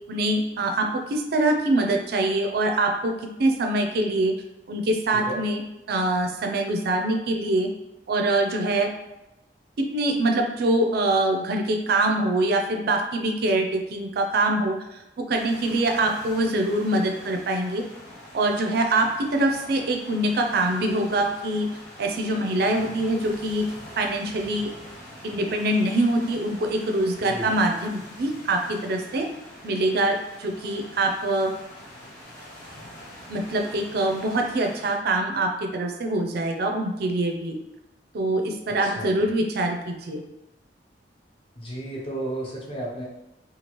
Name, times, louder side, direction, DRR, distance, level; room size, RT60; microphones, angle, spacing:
voice 1, 0.1-3.1 3.4-4.3 4.7-5.6 5.9-7.7 8.1-8.9 9.8-14.8 15.3-17.8 18.3-21.7 22.0-23.6 24.0-24.7 25.2-29.3 29.6-31.5 33.3-37.6 38.1-40.2, right 2 dB, 55° right, 3 dB, 0.4 m, -24 dB
sound 1, 15.3-34.9, left 1 dB, 50° left, 1.0 m, -44 dB
voice 2, 38.8-39.2 41.6-43.0, right 1 dB, 30° left, -4 dB, 0.7 m, -33 dB
3.0 x 2.3 x 2.9 m, 0.94 s
head